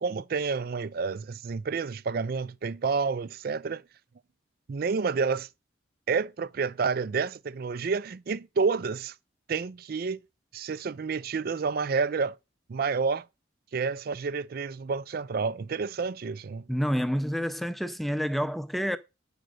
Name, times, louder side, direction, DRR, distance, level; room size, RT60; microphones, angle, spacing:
voice 1, 0.0-3.8 4.7-5.5 6.1-9.1 9.5-10.2 10.5-12.4 12.7-13.3 13.7-16.6, right 5 dB, 50° right, 0.4 m, -29 dB
voice 2, 16.7-19.0, equal, ahead, 0.6 m, -28 dB
8.9 x 5.2 x 6.3 m
head